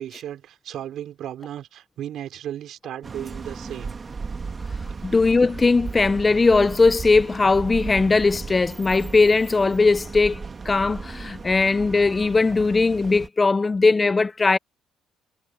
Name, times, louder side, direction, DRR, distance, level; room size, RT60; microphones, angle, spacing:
voice 1, 0.0-4.0 5.1-5.2, right 11 dB, 70° right, 3.9 m, -35 dB
sound 1, 3.0-13.3, right 4 dB, 35° right, 2.0 m, -35 dB
voice 2, 5.0-14.6, left 3 dB, 25° left, 0.5 m, -19 dB
supercardioid pair, 80°, 0 cm